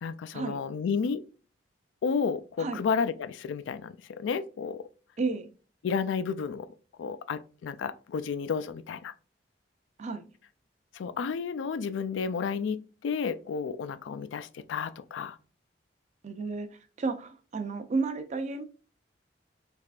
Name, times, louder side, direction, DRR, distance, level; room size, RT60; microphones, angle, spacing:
voice 1, 0.0-1.2 2.0-4.8 5.8-6.7 7.0-9.1 10.9-15.4, left 6 dB, 90° left, 0.3 m, -31 dB
voice 2, 5.2-5.5 10.0-10.2 16.2-16.7 17.0-18.6, right 4 dB, 40° right, 0.4 m, -32 dB
3.4 x 3.2 x 2.4 m
head